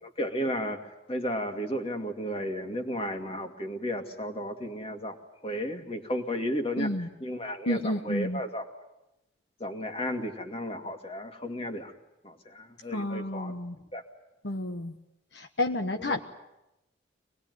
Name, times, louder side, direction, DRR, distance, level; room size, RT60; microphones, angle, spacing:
voice 1, 0.0-5.2 5.4-8.7 9.6-11.9 12.2-13.5 13.9-14.0 16.0-16.2, equal, 30° left, 4 dB, 2.3 m, -34 dB
voice 2, 6.8-7.1 7.7-8.4 12.9-13.7 14.4-14.9 15.3-16.2, left 1 dB, 60° left, 5 dB, 1.2 m, -30 dB
25.0 x 20.0 x 9.6 m, 0.93 s
head